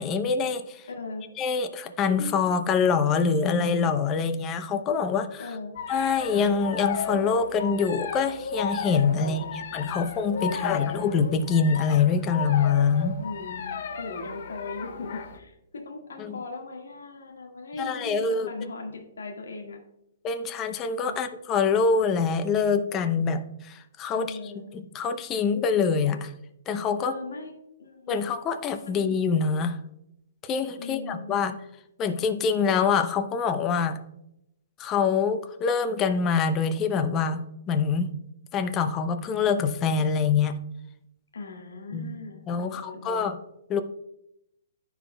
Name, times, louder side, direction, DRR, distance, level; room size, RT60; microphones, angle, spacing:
voice 1, 0.0-0.8 1.4-5.5 5.9-13.2 16.2-16.4 17.8-18.5 20.2-24.4 24.7-26.3 26.7-27.1 28.1-29.8 30.4-31.6 32.0-34.0 34.8-38.1 38.5-40.5 41.9-42.2 42.5-43.4 43.7-43.8, left 5 dB, 25° left, 9 dB, 0.6 m, -25 dB
voice 2, 0.9-1.2 5.4-5.7 9.2-10.0 10.4-10.8 13.2-19.8 21.1-21.2 24.1-24.7 27.0-27.5 27.8-28.3 28.8-29.1 30.7-31.3 41.3-43.3, left 3 dB, 80° left, 2 dB, 1.7 m, -39 dB
sound 1, 5.8-15.4, left 6 dB, 60° left, 0.9 m, -34 dB
14.0 x 4.7 x 2.2 m, 0.82 s
hypercardioid pair, 130°, 0 cm